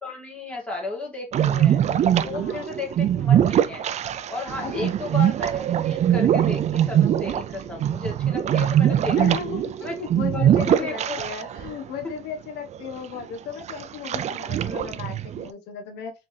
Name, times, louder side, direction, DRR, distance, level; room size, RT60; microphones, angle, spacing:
voice 1, 0.0-1.8 2.2-3.9 4.3-9.4 9.8-9.9 10.3-11.2, left 3 dB, 5° left, 2.2 m, -34 dB
sound 1, 1.3-11.7 12.0-12.1 12.7-13.2 13.7-15.5, right 10 dB, 40° right, 0.4 m, -22 dB
voice 2, 2.3-2.7 4.6-4.9 9.2-16.1, left 7 dB, 85° left, 0.9 m, -35 dB
3.6 x 3.3 x 3.3 m
cardioid pair, 110°, 17 cm